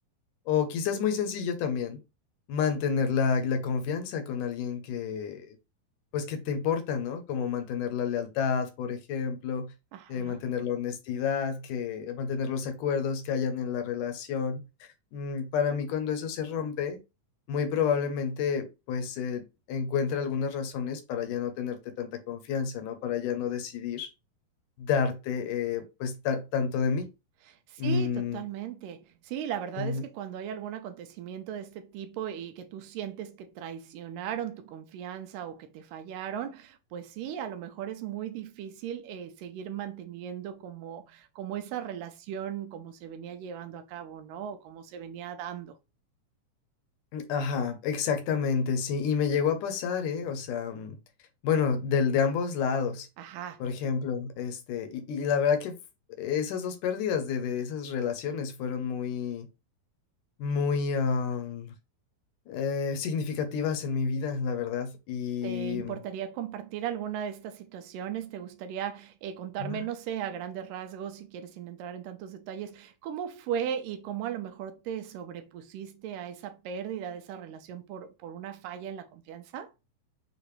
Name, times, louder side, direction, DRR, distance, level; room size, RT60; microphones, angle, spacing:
voice 1, 0.5-2.0 2.5-5.6 6.1-9.7 10.1-17.0 17.5-24.1 24.8-27.1 27.8-28.4 29.8-30.0 47.1-51.0 51.4-53.1 53.6-55.7 56.2-59.5 60.4-61.7 62.5-66.0 69.6-69.8, left 6 dB, 70° left, 2.2 m, -29 dB
voice 2, 9.9-10.4 27.4-45.8 53.2-53.6 65.4-79.7, right 9 dB, 80° right, 2.3 m, -37 dB
6.8 x 2.5 x 3.1 m
omnidirectional pair, 4.0 m